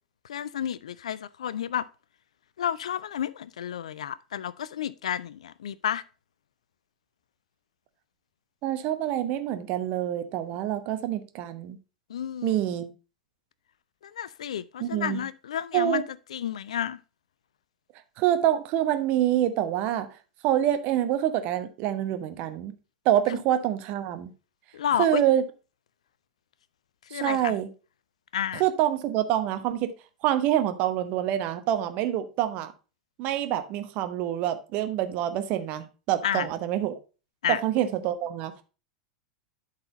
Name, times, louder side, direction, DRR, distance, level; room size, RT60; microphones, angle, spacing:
voice 1, 0.3-1.9 2.6-6.0 12.1-12.7 14.0-16.0 16.3-17.0 23.3-23.4 24.7-25.2 27.1-27.6 28.3-28.6 36.2-36.5 37.4-37.6, left 9 dB, 65° left, 0.4 m, -31 dB
voice 2, 8.6-11.8 12.4-12.9 14.8-15.2 15.7-16.0 18.2-20.1 20.4-22.7 23.0-24.3 25.0-25.4 27.1-27.7 28.6-29.9 30.2-32.7 33.2-37.0 37.6-38.5, right 11 dB, 40° right, 1.0 m, -26 dB
11.5 x 4.1 x 3.8 m
figure-of-eight pair, 85°, 4 cm